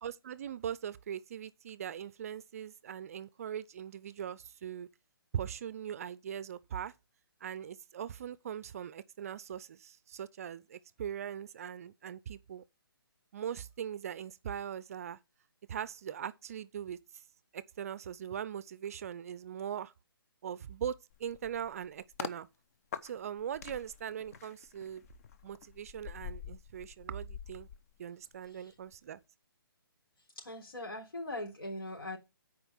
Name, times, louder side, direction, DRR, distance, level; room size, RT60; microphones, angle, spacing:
voice 1, 0.0-4.9 5.3-6.9 7.4-12.6 13.3-15.2 15.7-17.0 17.5-19.9 20.4-20.9 21.2-22.5 23.0-25.0 25.4-27.7 28.0-29.2, right 9 dB, 40° right, 0.5 m, -40 dB
sound 1, 21.1-22.4 22.9-28.5 28.8-29.1, left 8 dB, 40° left, 0.7 m, -46 dB
voice 2, 30.4-32.2, left 1 dB, 75° left, 3.7 m, -41 dB
8.9 x 4.8 x 6.3 m
figure-of-eight pair, 140°, 12 cm